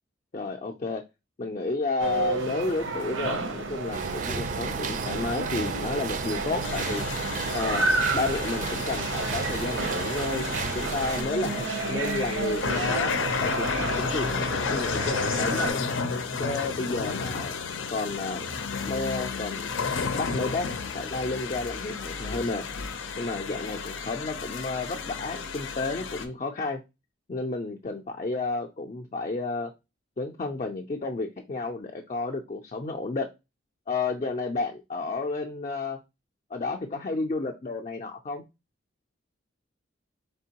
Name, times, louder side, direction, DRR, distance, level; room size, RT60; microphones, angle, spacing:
voice 1, 0.3-1.0 1.4-7.1 7.5-10.5 10.7-15.8 16.4-17.6 17.9-18.5 18.8-19.7 20.1-20.7 20.9-22.6 23.2-26.8 27.3-29.7 30.2-33.3 33.9-36.0 36.5-38.5, left 3 dB, 35° left, 3 dB, 0.4 m, -31 dB
sound 1, 2.0-15.7, right 3 dB, 80° right, 0.7 m, -32 dB
sound 2, 3.9-11.2, right 5 dB, 40° right, 0.4 m, -33 dB
sound 3, 6.6-26.3, left 5 dB, 90° left, 0.6 m, -32 dB
4.4 x 3.3 x 2.8 m, 0.25 s
head